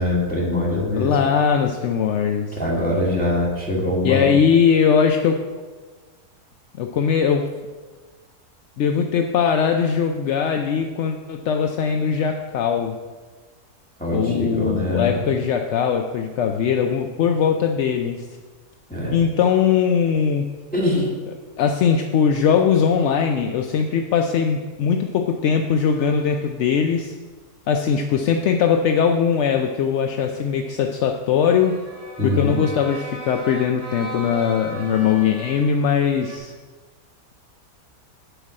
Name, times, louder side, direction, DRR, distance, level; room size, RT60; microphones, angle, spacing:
voice 1, 0.0-1.2 2.5-4.4 14.0-15.2 18.9-19.2 20.7-21.1 32.2-32.6, left 1 dB, 5° left, -5 dB, 2.0 m, -23 dB
voice 2, 1.0-2.6 4.0-5.4 6.8-7.5 8.8-13.0 14.1-18.3 19.1-20.5 21.6-27.1 27.7-31.8 32.2-36.5, left 7 dB, 65° left, 4 dB, 0.7 m, -20 dB
sound 1, 25.8-26.9 27.7-28.2 29.0-29.7 31.4-36.4, right 2 dB, 85° right, 3.8 m, -38 dB
7.9 x 5.0 x 7.5 m, 1.4 s
omnidirectional pair, 1.6 m